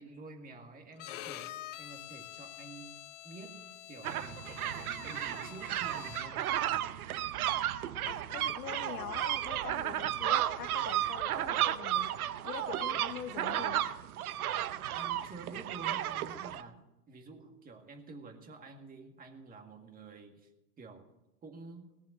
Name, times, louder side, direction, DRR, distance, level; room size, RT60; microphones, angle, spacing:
voice 1, 0.0-3.0 3.2-6.8 14.9-16.8 17.1-20.5 20.8-21.1 21.4-21.9, right 3 dB, 20° right, 4 dB, 2.0 m, -49 dB
Bowed string instrument, 1.0-6.5, left 15 dB, 50° left, 0.9 m, -47 dB
sound 1, 4.0-16.6, right 12 dB, 65° right, 0.9 m, -33 dB
voice 2, 8.0-13.8, left 9 dB, 80° left, 10 dB, 1.2 m, -44 dB
18.5 x 7.2 x 7.8 m, 0.93 s
hypercardioid pair, 125°, 46 cm